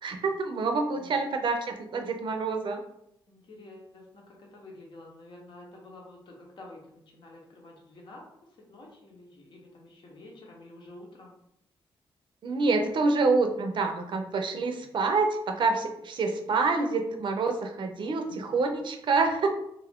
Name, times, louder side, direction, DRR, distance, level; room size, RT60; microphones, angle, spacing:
voice 1, 0.0-2.8 12.4-19.5, right 3 dB, 60° right, 4 dB, 0.5 m, -27 dB
voice 2, 0.9-1.3 3.3-8.3 8.7-11.3 18.0-18.5, left 2 dB, 60° left, -1 dB, 0.8 m, -49 dB
2.5 x 2.4 x 3.4 m, 0.78 s
cardioid pair, 110°, 9 cm